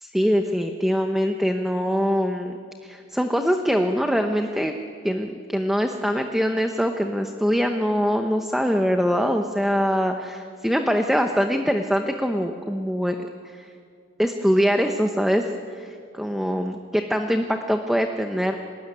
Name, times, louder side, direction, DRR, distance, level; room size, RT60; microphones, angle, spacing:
voice 1, 0.0-2.5 2.8-4.7 5.0-13.2 13.4-13.7 14.2-15.4 15.7-18.5, equal, ahead, 4 dB, 0.9 m, -23 dB
25.5 x 19.5 x 9.8 m, 2.3 s
head